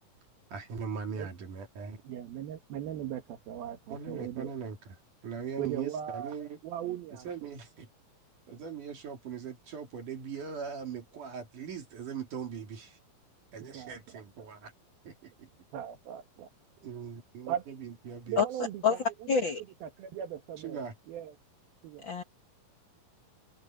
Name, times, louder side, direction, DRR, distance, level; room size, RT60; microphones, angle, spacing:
voice 1, 0.5-2.0 3.9-5.0 5.2-6.6 7.3-7.9 8.5-13.0 13.5-14.7 15.0-15.5 16.8-18.4 20.6-20.9, right 6 dB, 60° right, 3.9 m, -40 dB
voice 2, 2.1-4.5 5.6-6.3 6.6-7.3 13.7-14.0 15.7-16.5 17.5-17.6 18.3-19.0 19.3-19.4 19.8-20.8 21.1-21.3 21.8-22.1, right 10 dB, 90° right, 3.5 m, -38 dB
voice 3, 19.3-19.6 22.0-22.2, left 6 dB, 55° left, 1.4 m, -26 dB
omnidirectional pair, 4.1 m